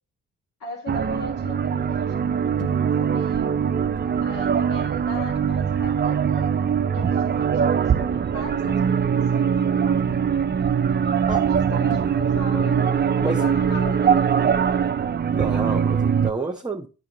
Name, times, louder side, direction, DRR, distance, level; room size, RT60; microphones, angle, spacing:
voice 1, 0.6-3.6 4.2-6.7 6.9-9.5 11.5-14.3, left 2 dB, 85° left, 2.6 m, -39 dB
sound 1, 0.9-16.3, right 7 dB, 35° right, 0.5 m, -22 dB
sound 2, 2.6-3.1 4.0-4.3 5.3-5.8 6.9-7.2 8.6-9.1 10.0-10.5 11.9-12.6, left 6 dB, 55° left, 0.8 m, -42 dB
voice 2, 15.3-16.9, right 3 dB, 15° right, 1.0 m, -28 dB
9.3 x 4.9 x 2.9 m
cardioid pair, 75°, 31 cm